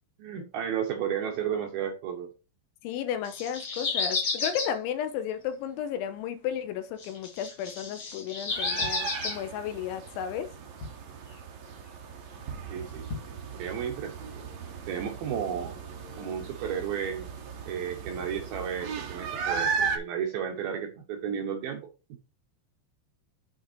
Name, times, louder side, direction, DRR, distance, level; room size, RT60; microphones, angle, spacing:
voice 1, 0.2-2.3 12.7-13.1 13.5-14.3 14.9-15.8 16.2-17.4 17.7-21.8, right 8 dB, 75° right, 2.3 m, -33 dB
voice 2, 2.8-10.5, left 9 dB, 80° left, 3.2 m, -33 dB
sound 1, 3.2-4.7 7.0-9.4, left 4 dB, 40° left, 2.1 m, -32 dB
sound 2, 8.5-20.0, right 6 dB, 90° right, 1.5 m, -36 dB
sound 3, 8.8-9.8 10.3-10.4 10.5-11.3 11.7-12.0 12.3-12.4 12.9-13.5 14.0-14.1, left 4 dB, 60° left, 1.3 m, -42 dB
7.9 x 5.4 x 4.4 m
omnidirectional pair, 5.4 m